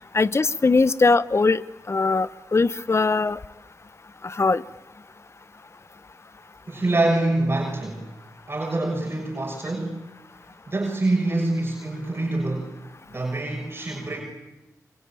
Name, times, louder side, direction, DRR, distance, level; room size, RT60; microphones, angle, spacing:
voice 1, 0.1-1.6 1.9-3.4 4.2-4.6, left 3 dB, 40° left, 17 dB, 0.9 m, -20 dB
voice 2, 6.7-8.0 8.5-10.1 10.7-12.7 13.1-14.2, right 2 dB, 35° right, 0 dB, 6.7 m, -25 dB
25.5 x 24.5 x 8.9 m, 0.97 s
cardioid pair, 50°, 7 cm